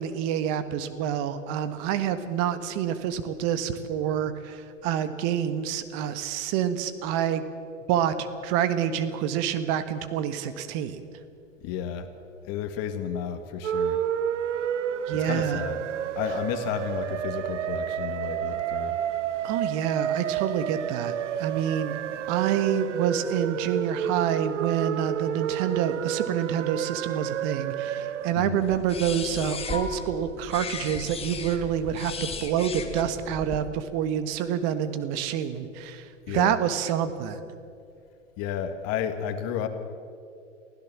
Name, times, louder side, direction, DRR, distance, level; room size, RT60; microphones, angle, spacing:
voice 1, 0.0-7.5 7.9-11.0 15.1-15.6 19.4-22.0 22.3-37.4, right 9 dB, 40° right, 11 dB, 1.5 m, -27 dB
voice 2, 11.6-12.1 12.4-14.0 15.1-15.8 16.1-19.0 28.4-28.6 36.3-36.6 38.4-39.7, left 9 dB, 40° left, 8 dB, 2.0 m, -32 dB
sound 1, 13.6-28.3, right 10 dB, 70° right, 0.9 m, -30 dB
sound 2, 28.6-33.6, left 4 dB, 15° left, 1.8 m, -36 dB
23.5 x 16.0 x 7.3 m, 2.5 s
hypercardioid pair, 105°, 38 cm